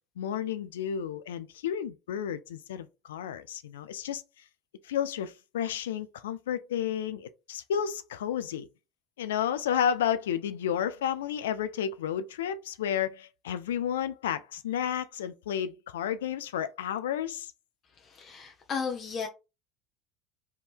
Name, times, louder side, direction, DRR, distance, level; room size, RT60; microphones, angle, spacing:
voice 1, 0.2-4.2 4.8-8.7 9.2-17.5, left 9 dB, 85° left, 0.3 m, -31 dB
voice 2, 18.0-19.3, left 6 dB, 45° left, 0.8 m, -34 dB
3.5 x 2.7 x 4.3 m
hypercardioid pair, 75°, 0 cm